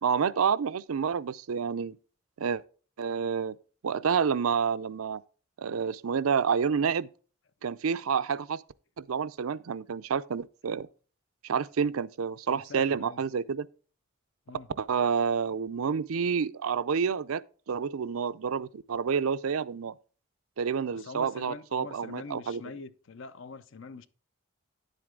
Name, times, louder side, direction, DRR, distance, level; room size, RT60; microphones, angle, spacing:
voice 1, 0.0-2.0 2.4-2.6 3.0-3.6 3.8-5.2 5.6-7.1 7.6-8.6 9.0-10.9 11.4-13.7 14.8-17.4 17.7-19.9 20.6-22.6, right 6 dB, 85° right, 0.5 m, -29 dB
voice 2, 12.5-13.2 14.5-14.7 20.9-24.1, left 4 dB, 60° left, 0.6 m, -44 dB
10.5 x 7.8 x 3.7 m
head